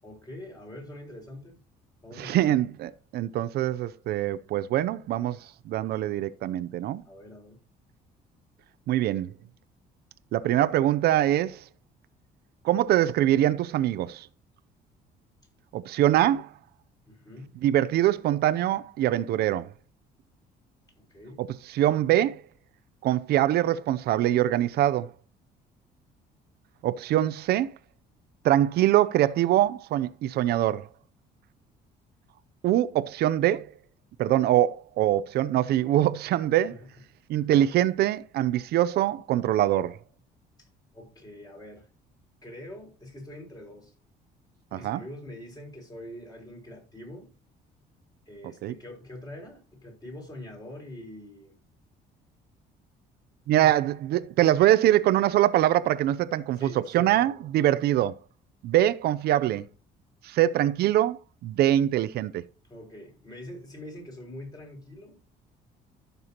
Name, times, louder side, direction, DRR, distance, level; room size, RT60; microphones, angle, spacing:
voice 1, 0.0-1.6 2.0-2.6 7.0-7.6 17.1-17.6 21.0-21.4 36.7-36.9 37.4-37.5 40.6-40.7 40.9-41.9 42.4-43.9 44.7-47.3 48.3-51.5 53.6-53.7 56.6-57.5 62.7-65.2, left 1 dB, 20° left, 5.6 m, -44 dB
voice 2, 2.2-7.0 8.9-9.3 10.3-11.6 12.6-14.3 15.7-16.5 17.6-19.7 21.4-22.4 23.0-25.1 26.8-27.7 28.4-30.9 32.6-33.7 34.2-36.7 37.3-40.0 44.8-45.0 48.6-48.7 53.5-58.1 58.6-59.7 60.2-62.4, right 13 dB, 70° right, 0.6 m, -23 dB
15.0 x 6.9 x 2.9 m
cardioid pair, 110°, 17 cm